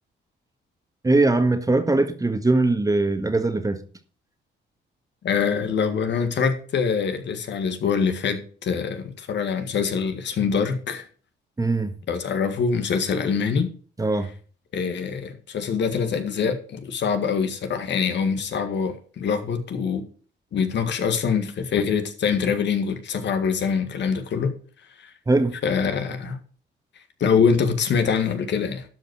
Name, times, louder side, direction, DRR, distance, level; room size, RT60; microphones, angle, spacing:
voice 1, 1.0-3.8 11.6-11.9 14.0-14.3 25.3-25.6, right 2 dB, 15° right, 1.5 m, -21 dB
voice 2, 5.2-11.0 12.1-13.7 14.7-20.1 20.5-24.5 25.0-25.1 25.6-26.4 27.2-28.9, left 6 dB, 65° left, 1.9 m, -24 dB
12.0 x 5.4 x 6.3 m
cardioid pair, 90°, 20 cm